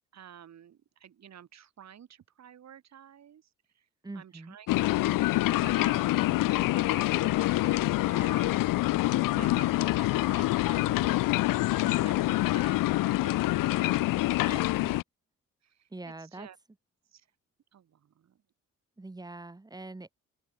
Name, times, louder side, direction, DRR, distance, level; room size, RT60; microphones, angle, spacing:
voice 1, 0.1-3.9 4.1-4.7 5.3-8.6 9.4-11.2 11.6-14.9 15.6-16.6 17.1-17.3 17.7-18.4, right 9 dB, 55° right, 7.9 m, -50 dB
voice 2, 4.0-4.6 9.0-9.5 11.8-12.4 14.4-15.0 15.9-16.5 19.0-20.1, right 2 dB, 10° right, 2.4 m, -44 dB
sound 1, 4.7-15.0, left 18 dB, 85° left, 0.6 m, -26 dB
open air
cardioid pair, 140°, 32 cm